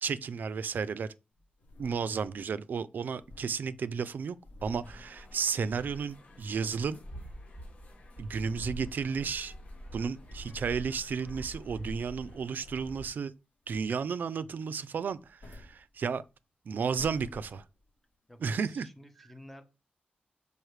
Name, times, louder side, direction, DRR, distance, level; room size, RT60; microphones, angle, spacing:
voice 1, 0.0-1.1 1.8-7.0 8.2-9.5 9.9-13.3 13.7-16.2 16.7-17.6 18.4-18.9, right 6 dB, 65° right, 0.4 m, -33 dB
sound 1, 1.4-2.5 2.7-2.8 3.0-5.8 6.1-7.1 7.5-7.8 8.4-8.8 9.3-9.4 9.9-10.8 11.8-13.3 13.6-14.2 15.1-16.3 16.7-17.9 18.5-18.6, left 1 dB, 65° left, 3.1 m, -52 dB
sound 2, 4.8-13.1, equal, 45° left, 2.2 m, -46 dB
voice 2, 18.3-19.6, left 1 dB, 5° left, 0.9 m, -52 dB
6.3 x 5.3 x 3.2 m
wide cardioid pair, 145°, 3 cm